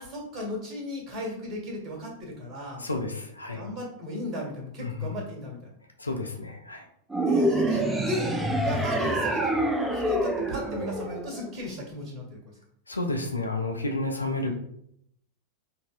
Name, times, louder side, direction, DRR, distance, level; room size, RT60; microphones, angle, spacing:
voice 1, 0.0-2.9 3.5-5.7 7.2-12.4, equal, 30° right, 0 dB, 1.3 m, -36 dB
voice 2, 2.8-3.6 4.8-5.1 6.0-6.8 12.9-14.5, left 2 dB, 80° left, 3 dB, 0.5 m, -31 dB
sound 1, 7.1-11.6, right 1 dB, 5° right, 0.4 m, -26 dB
4.7 x 2.7 x 2.3 m, 0.72 s
figure-of-eight pair, 90°, 0 cm